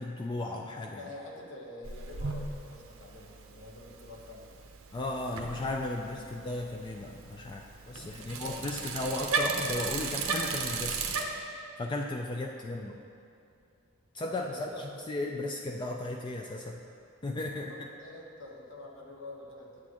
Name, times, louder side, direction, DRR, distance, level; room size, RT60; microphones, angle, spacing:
voice 1, 0.0-1.0 4.9-11.0 11.8-13.0 14.1-14.5 15.1-16.8 17.2-17.7, left 2 dB, 20° left, 1 dB, 0.3 m, -35 dB
voice 2, 0.9-4.9 6.0-6.1 7.9-8.8 14.3-14.9 17.5-19.8, left 2 dB, 60° left, -2 dB, 1.2 m, -47 dB
Bicycle, 1.8-11.2, right 4 dB, 70° right, 0.7 m, -36 dB
9.8 x 7.2 x 2.9 m, 2.5 s
head